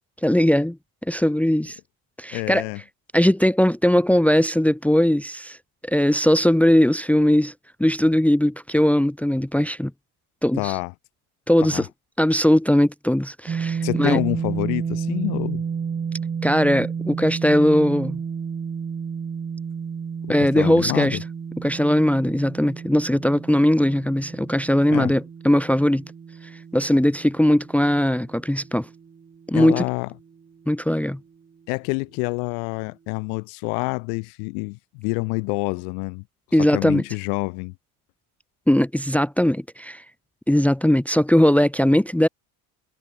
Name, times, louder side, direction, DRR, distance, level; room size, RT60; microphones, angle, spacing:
voice 1, 0.2-0.8 1.1-1.8 2.2-2.6 3.1-5.6 5.8-7.5 7.8-9.9 10.4-10.8 11.5-11.9 12.2-14.2 16.4-18.2 20.3-21.2 21.6-26.0 26.7-28.9 29.5-29.8 30.7-31.2 36.5-37.0 38.7-40.0 40.5-42.3, left 1 dB, 5° left, 1.3 m, -19 dB
voice 2, 2.3-2.8 10.6-10.9 11.6-11.8 13.8-15.6 20.4-21.2 24.9-25.1 29.5-30.1 31.7-36.2 36.6-37.7, left 40 dB or more, 80° left, 0.9 m, -27 dB
sound 1, 13.5-29.4, right 6 dB, 20° right, 0.8 m, -31 dB
supercardioid pair, 85°, 44 cm